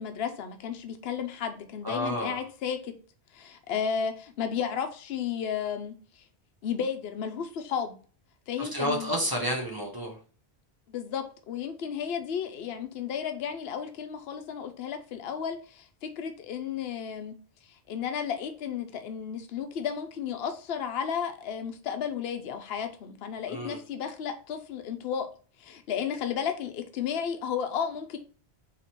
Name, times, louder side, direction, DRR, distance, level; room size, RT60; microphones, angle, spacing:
voice 1, 0.0-2.9 3.3-6.2 6.6-8.0 8.5-9.2 10.9-17.3 17.7-25.3 25.6-28.2, left 7 dB, 70° left, 0.9 m, -33 dB
voice 2, 1.8-2.4 8.6-10.2 23.5-23.8, equal, 20° right, 0.9 m, -30 dB
4.1 x 2.9 x 4.4 m
omnidirectional pair, 1.1 m